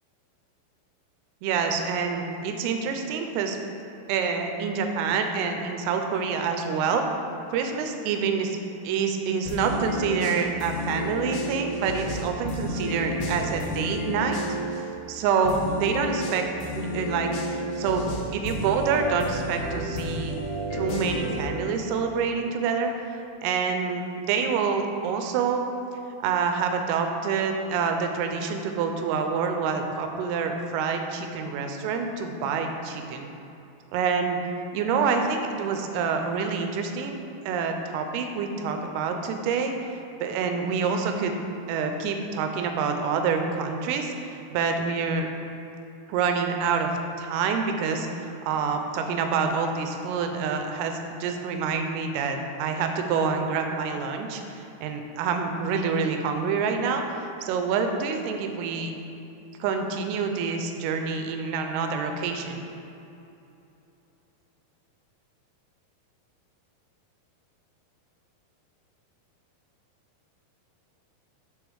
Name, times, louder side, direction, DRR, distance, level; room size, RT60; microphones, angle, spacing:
voice 1, 1.4-3.6 4.1-7.1 7.5-8.6 8.8-14.4 15.1-16.5 16.7-18.0 18.3-20.4 20.7-22.9 23.4-25.7 26.2-33.3 33.9-34.4 34.7-37.2 37.5-41.3 41.7-45.3 46.1-46.9 47.2-58.9 59.6-62.6, right 5 dB, 80° right, 5 dB, 2.5 m, -27 dB
sound 1, 9.5-14.8 15.5-21.5, equal, 75° left, 2.0 m, -31 dB
8.8 x 3.6 x 4.7 m, 2.8 s
omnidirectional pair, 4.7 m